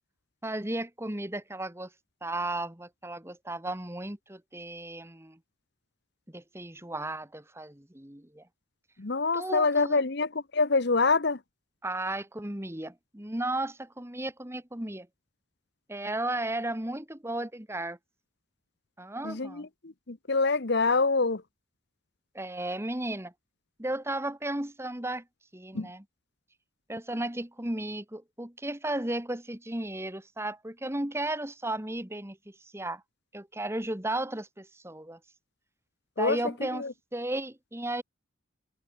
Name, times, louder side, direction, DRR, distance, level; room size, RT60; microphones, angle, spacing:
voice 1, 0.4-1.9 2.2-5.4 6.3-8.4 9.3-10.0 11.8-15.1 15.9-18.0 19.0-19.7 22.3-23.3 23.8-25.2 25.5-26.0 26.9-33.0 33.3-35.2 36.2-38.0, right 1 dB, 15° right, 1.6 m, -34 dB
voice 2, 9.0-11.4 19.2-21.4 25.7-25.9 36.2-36.4 36.7-36.9, left 3 dB, 55° left, 1.1 m, -26 dB
head